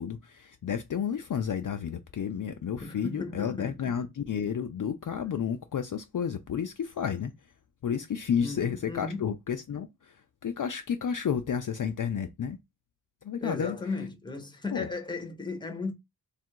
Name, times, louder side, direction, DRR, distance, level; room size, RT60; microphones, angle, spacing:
voice 1, 0.0-7.3 7.8-10.1 10.4-12.6 13.2-13.8 14.7-14.9, left 7 dB, 55° left, 0.4 m, -31 dB
voice 2, 2.8-3.8 8.4-9.3 13.4-15.9, left 3 dB, 10° left, 0.8 m, -36 dB
3.4 x 2.5 x 4.5 m
wide cardioid pair, 120°, 40 cm